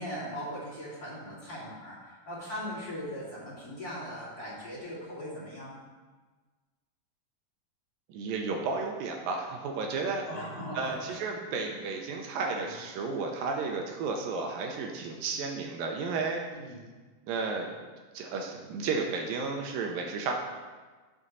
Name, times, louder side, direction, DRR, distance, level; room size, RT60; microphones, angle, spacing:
voice 1, 0.0-5.8 10.2-11.3 11.7-11.8 12.5-12.7 16.5-16.8, equal, 25° left, -8 dB, 3.0 m, -39 dB
voice 2, 8.1-10.2 10.7-16.4 17.3-17.8 18.1-20.3, right 4 dB, 80° right, 1 dB, 2.5 m, -33 dB
7.6 x 6.5 x 5.5 m, 1.4 s
omnidirectional pair, 4.2 m